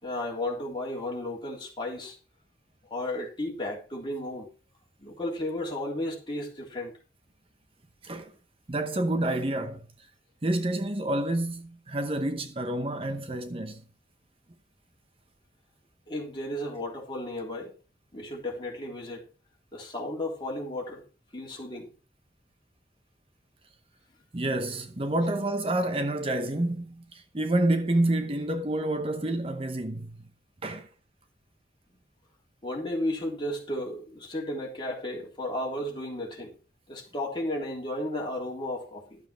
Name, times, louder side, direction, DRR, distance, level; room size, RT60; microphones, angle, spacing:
voice 1, 0.0-2.2 2.9-4.5 5.0-6.9 16.1-17.7 18.1-19.2 19.7-21.0 21.3-21.9 32.6-36.5 36.9-39.2, left 1 dB, 25° left, 3.6 m, -34 dB
voice 2, 8.7-9.8 10.4-13.8 24.3-30.2 30.6-30.9, right 1 dB, 30° right, 0.9 m, -28 dB
12.5 x 7.4 x 4.6 m
head